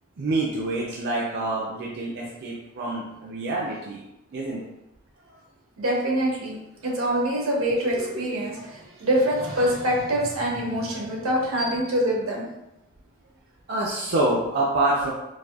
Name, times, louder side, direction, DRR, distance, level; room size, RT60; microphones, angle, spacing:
voice 1, 0.2-4.0 4.3-4.6 13.7-15.1, right 2 dB, 50° right, -4 dB, 0.4 m, -26 dB
voice 2, 5.8-12.4, equal, 85° right, -2 dB, 1.0 m, -25 dB
4.0 x 2.6 x 2.3 m, 0.92 s
head